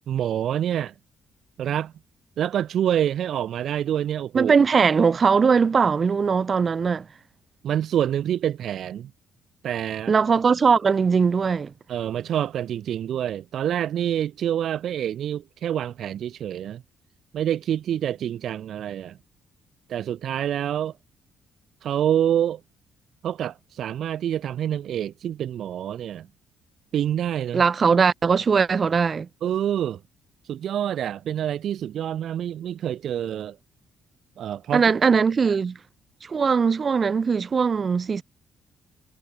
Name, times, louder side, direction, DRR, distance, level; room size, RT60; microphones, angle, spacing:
voice 1, 0.1-0.9 1.6-1.9 2.4-4.5 7.6-9.1 9.6-10.1 11.9-16.8 17.3-19.2 19.9-20.9 21.8-22.6 23.2-26.3 26.9-27.6 29.4-30.0 30.5-33.6 34.4-34.9, right 10 dB, 70° right, 1.0 m, -27 dB
voice 2, 4.3-7.1 10.1-11.7 27.5-29.3 34.7-35.8 36.2-38.2, right 5 dB, 40° right, 1.2 m, -20 dB
cardioid pair, 90°, 0 cm